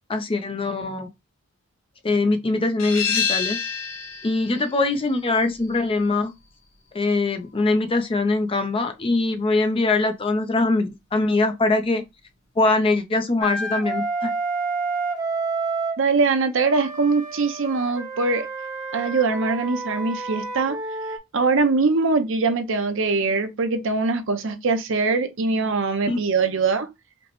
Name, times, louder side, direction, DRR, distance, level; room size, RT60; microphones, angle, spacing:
voice 1, 0.1-1.1 2.0-3.6 4.2-6.3 6.9-12.0 12.6-14.3 26.1-26.2, left 3 dB, 25° left, 0.5 m, -22 dB
sound 1, 2.8-8.2, left 6 dB, 80° left, 1.9 m, -30 dB
Wind instrument woodwind instrument, 13.4-16.0 16.6-21.2, right 3 dB, 20° right, 0.9 m, -29 dB
voice 2, 16.0-18.5 18.9-20.8 21.3-26.9, right 4 dB, 65° right, 0.6 m, -22 dB
5.1 x 2.1 x 3.0 m
head